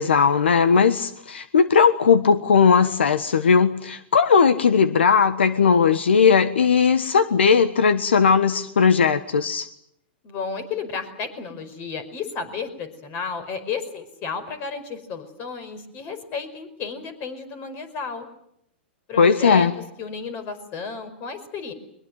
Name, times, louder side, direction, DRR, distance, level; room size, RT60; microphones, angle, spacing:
voice 1, 0.0-9.7 19.2-19.7, left 6 dB, 85° left, 12 dB, 1.3 m, -18 dB
voice 2, 10.2-18.3 19.1-19.7 20.0-21.7, left 5 dB, 35° left, 11 dB, 5.2 m, -33 dB
22.5 x 22.0 x 9.3 m, 0.75 s
hypercardioid pair, 125°, 6 cm